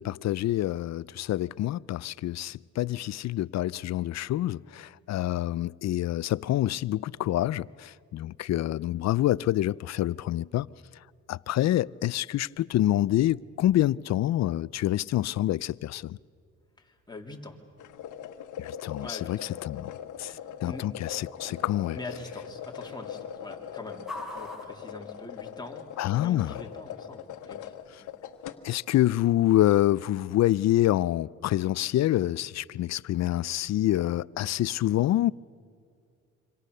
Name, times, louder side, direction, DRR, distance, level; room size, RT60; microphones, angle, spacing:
voice 1, 0.0-10.7 11.3-16.2 18.6-19.4 19.7-19.9 20.2-20.3 20.6-22.0 26.0-26.5 28.6-35.3, left 14 dB, 60° left, 0.5 m, -27 dB
sound 1, 11.1-25.9, left 2 dB, ahead, 6.2 m, -51 dB
voice 2, 16.8-17.6 19.0-19.6 20.2-20.9 21.9-28.1, left 2 dB, 15° left, 3.3 m, -44 dB
sound 2, 17.8-28.6, left 9 dB, 80° left, 1.3 m, -41 dB
Fireworks, 21.5-24.4 24.7-25.1 25.4-25.5, right 3 dB, 70° right, 4.3 m, -56 dB
26.5 x 26.0 x 6.7 m
cardioid pair, 90°, 30 cm